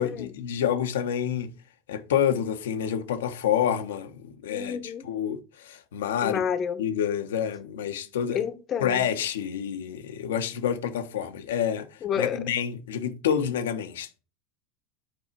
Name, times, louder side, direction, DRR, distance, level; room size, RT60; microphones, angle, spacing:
voice 1, 0.0-1.5 1.9-6.4 6.8-8.4 8.8-14.2, left 9 dB, 80° left, 1.2 m, -28 dB
voice 2, 4.5-5.1 6.2-6.8 8.3-9.0 12.0-12.4, left 8 dB, 40° left, 1.1 m, -29 dB
8.0 x 4.8 x 4.6 m
hypercardioid pair, 95°, 0 cm